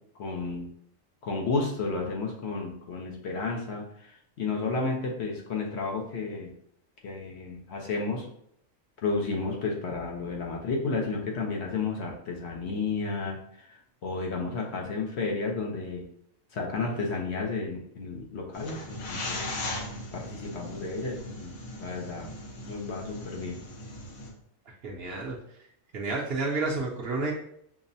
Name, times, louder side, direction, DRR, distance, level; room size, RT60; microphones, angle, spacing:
voice 1, 0.2-0.7 1.2-6.5 7.0-8.3 9.0-16.0 16.5-19.5 20.1-21.5 21.8-22.3 22.6-23.6, left 3 dB, 60° left, 0 dB, 0.9 m, -32 dB
sound 1, 18.5-24.3, left 1 dB, 85° left, 1.2 m, -38 dB
voice 2, 24.8-25.4 25.9-27.3, right 3 dB, 55° right, -2 dB, 0.8 m, -30 dB
5.8 x 2.0 x 2.7 m, 0.70 s
omnidirectional pair, 1.4 m